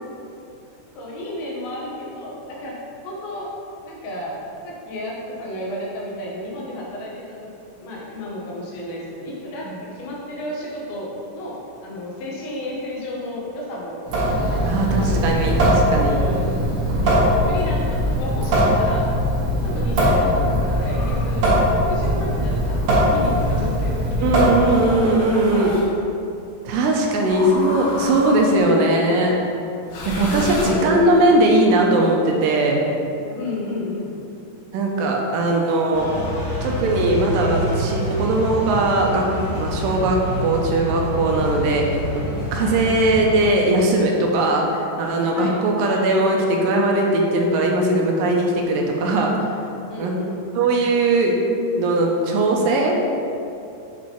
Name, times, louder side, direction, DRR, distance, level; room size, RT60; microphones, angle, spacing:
voice 1, 1.0-3.5 3.8-7.5 7.8-14.0 14.5-14.7 15.0-15.3 16.1-16.7 17.0-19.1 19.6-21.5 21.7-25.9 27.0-27.2 29.7-31.4 33.3-34.1 42.6-42.8 45.3-45.6 49.9-50.6, left 1 dB, 85° left, -4 dB, 3.2 m, -32 dB
Water tap faucet / Sink (filling or washing) / Drip, 14.0-25.0, equal, 55° right, 2.2 m, -20 dB
voice 2, 14.7-16.2 24.2-25.7 26.6-29.3 30.1-32.9 34.7-36.1 36.6-41.9 42.5-49.5 50.0-50.1 50.6-51.4 51.8-53.0, right 2 dB, 80° right, 0 dB, 2.3 m, -19 dB
sound 1, 20.8-21.5 22.4-23.6 24.6-25.9 27.2-28.7 29.8-31.3, left 2 dB, 70° left, 1.7 m, -33 dB
sound 2, 35.9-43.3, equal, 40° left, 1.7 m, -27 dB
7.3 x 4.4 x 4.5 m, 2.6 s
omnidirectional pair, 4.1 m